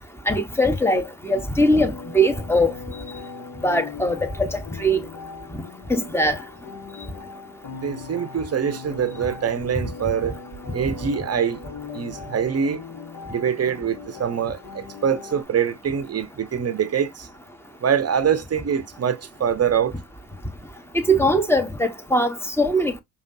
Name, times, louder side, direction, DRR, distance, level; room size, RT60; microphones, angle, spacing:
voice 1, 0.3-2.7 3.6-5.0 5.9-6.4 10.8-10.9 20.9-23.0, equal, 5° left, 1.1 m, -21 dB
sound 1, 1.3-15.4, left 5 dB, 50° left, 1.4 m, -39 dB
voice 2, 7.8-10.4 10.7-11.6 11.9-12.8 13.3-17.3 17.8-20.0, right 7 dB, 35° right, 0.8 m, -24 dB
5.1 x 2.7 x 2.6 m
hypercardioid pair, 50°, 44 cm